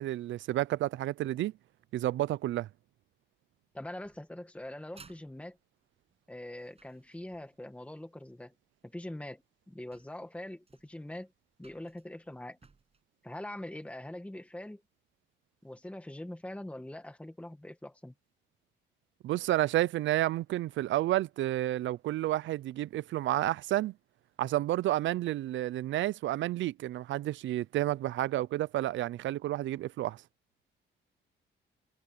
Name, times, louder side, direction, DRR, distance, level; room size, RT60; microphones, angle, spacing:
voice 1, 0.0-1.5 1.9-2.7 19.2-23.9 24.4-30.2, right 14 dB, 75° right, 0.5 m, -30 dB
voice 2, 3.7-5.6 6.3-8.5 8.8-11.3 11.6-12.6 13.2-14.8 15.6-18.1, left 1 dB, 5° left, 1.6 m, -43 dB
sound 1, 4.0-7.7 9.0-9.1 9.6-9.7 9.9-13.0, right 4 dB, 30° right, 7.6 m, -61 dB
cardioid pair, 90°, 20 cm